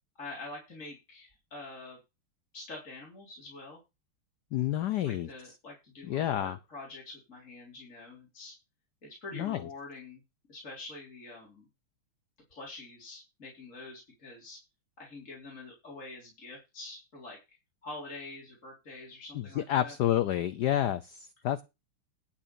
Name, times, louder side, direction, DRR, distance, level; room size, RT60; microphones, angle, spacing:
voice 1, 0.2-2.0 2.5-3.8 5.0-8.5 9.0-10.2 10.5-11.7 12.5-14.6 15.0-20.0, left 2 dB, 35° left, -2 dB, 4.0 m, -46 dB
voice 2, 4.5-5.3 6.1-6.6 9.3-9.6 19.3-21.6, left 11 dB, 65° left, 13 dB, 1.1 m, -29 dB
11.5 x 5.0 x 7.0 m, 0.25 s
omnidirectional pair, 2.4 m